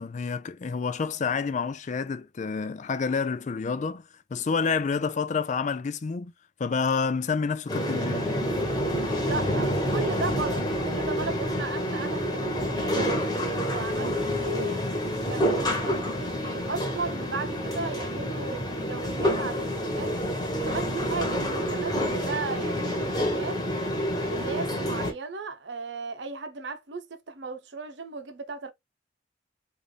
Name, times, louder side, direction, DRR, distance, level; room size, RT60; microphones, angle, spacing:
voice 1, 0.0-4.0 4.3-6.3 6.6-8.5, left 5 dB, 40° left, 0.4 m, -28 dB
sound 1, 7.7-25.1, equal, 20° left, 1.2 m, -28 dB
voice 2, 9.2-14.8 15.3-20.1 20.5-23.6 24.2-28.7, right 3 dB, 70° right, 0.8 m, -36 dB
3.7 x 2.6 x 3.2 m
head